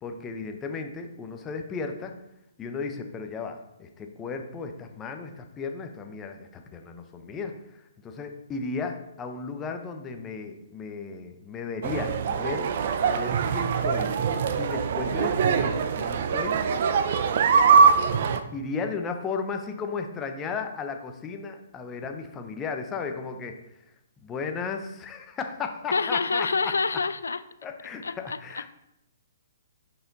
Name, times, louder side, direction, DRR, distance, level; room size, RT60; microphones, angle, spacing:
voice 1, 0.0-2.1 2.6-12.7 13.0-14.1 14.6-16.6 18.5-23.6 24.2-26.5 27.6-28.7, left 4 dB, 20° left, 5 dB, 0.8 m, -35 dB
sound 1, 11.8-18.4, right 6 dB, 55° right, 0.5 m, -23 dB
voice 2, 25.9-27.4 28.0-28.4, left 4 dB, 85° left, 14 dB, 0.4 m, -26 dB
6.7 x 5.5 x 4.0 m, 0.85 s
hypercardioid pair, 140°, 0 cm